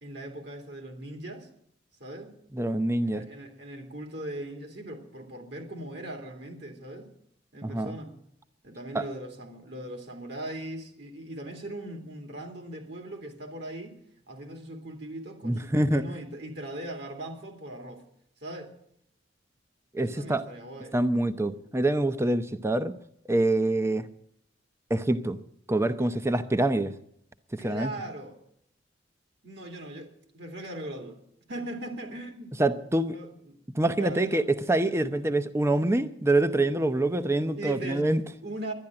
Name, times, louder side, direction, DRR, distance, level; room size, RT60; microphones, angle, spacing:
voice 1, 0.0-1.5 2.0-2.3 3.0-7.1 7.5-8.2 8.6-14.0 14.3-18.0 18.4-18.7 20.0-21.0 27.6-28.4 29.4-30.1 30.3-31.2 31.5-32.6 33.1-33.6 33.9-34.4 37.6-38.7, right 1 dB, 60° right, 2.5 m, -39 dB
voice 2, 2.5-3.2 7.6-7.9 8.9-9.0 15.4-16.0 19.9-20.4 20.9-22.9 23.3-24.1 24.9-25.4 25.7-26.9 27.5-27.9 32.6-33.2 33.7-38.2, right 2 dB, 15° right, 0.6 m, -25 dB
12.0 x 10.5 x 8.7 m
head